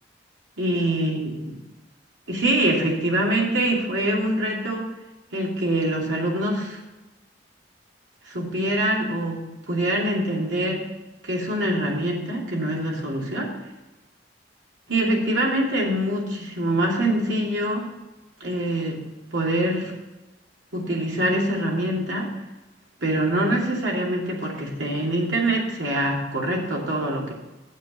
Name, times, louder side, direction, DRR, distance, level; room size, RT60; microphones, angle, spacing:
voice 1, 0.6-1.6 2.3-4.9 5.3-6.8 8.3-10.8 11.2-13.5 14.9-17.9 18.4-19.0 19.3-20.0 20.7-22.3 23.0-27.3, right 1 dB, 80° right, -2 dB, 2.6 m, -24 dB
7.3 x 7.3 x 8.2 m, 1.1 s
head